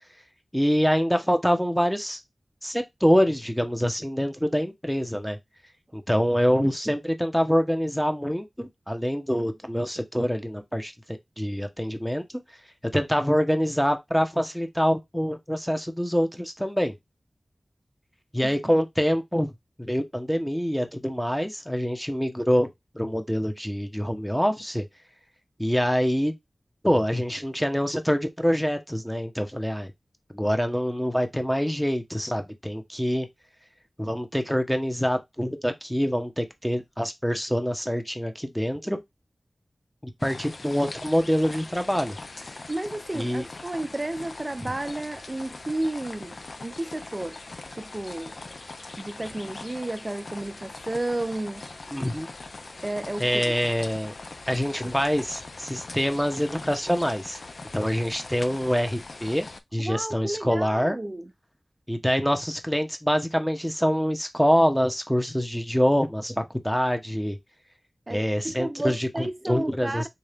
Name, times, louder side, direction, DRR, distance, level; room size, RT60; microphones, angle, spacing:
voice 1, 0.5-2.2 2.6-5.4 5.9-12.2 12.9-16.9 18.3-19.5 19.8-22.7 22.9-24.8 25.6-26.3 26.8-29.9 30.3-33.3 34.0-39.0 40.0-42.2 43.1-43.4 44.6-44.7 51.9-52.3 53.2-54.1 54.5-57.4 57.7-59.5 59.7-61.0 61.9-67.4 68.1-70.1, equal, 5° left, 0.9 m, -25 dB
sound 1, 40.2-59.6, left 3 dB, 65° left, 0.4 m, -41 dB
voice 2, 42.7-46.4 46.6-47.4 47.8-48.3 49.0-51.7 52.8-53.5 59.8-61.3 68.1-70.1, right 1 dB, 35° right, 0.4 m, -32 dB
3.7 x 2.7 x 3.4 m
cardioid pair, 40°, 0 cm